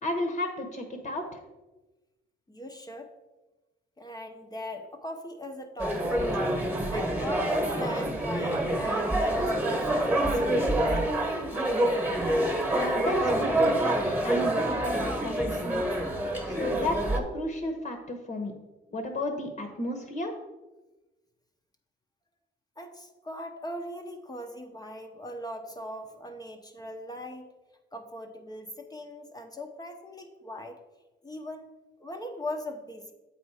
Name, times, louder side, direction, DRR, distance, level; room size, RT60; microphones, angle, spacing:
voice 1, 0.0-1.3 12.7-13.9 14.2-15.9 16.4-18.5 18.9-20.3, left 1 dB, 40° left, 4 dB, 1.1 m, -33 dB
voice 2, 2.5-3.1 4.0-6.3 6.9-10.9 22.8-27.5 27.9-30.8 31.2-31.7 32.0-33.1, left 1 dB, 20° left, 4 dB, 0.8 m, -40 dB
sound 1, 5.8-17.2, right 1 dB, 10° right, 1.3 m, -27 dB
7.9 x 4.3 x 4.8 m, 1.1 s
cardioid pair, 90°, 20 cm